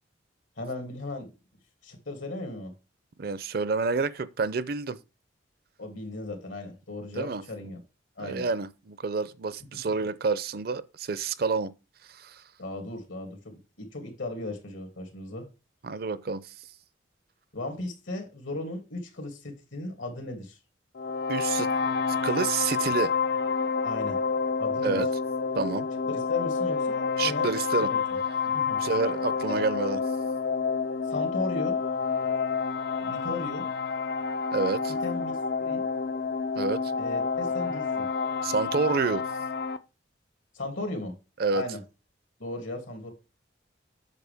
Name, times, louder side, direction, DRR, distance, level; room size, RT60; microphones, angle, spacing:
voice 1, 0.6-1.3 1.8-2.7 5.8-7.8 8.2-8.5 12.6-15.5 17.5-20.6 23.8-24.2 24.6-25.0 26.1-27.5 27.8-28.0 28.5-28.8 29.5-29.7 31.1-31.8 33.0-33.7 35.0-35.8 37.0-38.1 40.5-41.1 41.5-41.8 42.4-43.1, left 2 dB, 80° left, 2.7 m, -36 dB
voice 2, 3.2-5.0 7.1-7.4 8.2-11.7 12.0-12.4 15.8-16.7 21.3-21.7 22.1-23.1 24.8-25.1 25.5-25.9 27.2-27.9 28.8-30.0 34.5-34.9 36.6-36.9 38.4-39.2 41.4-41.6, right 4 dB, 50° right, 0.5 m, -28 dB
sound 1, 21.0-39.8, left 5 dB, 55° left, 0.5 m, -29 dB
8.3 x 6.7 x 3.5 m
head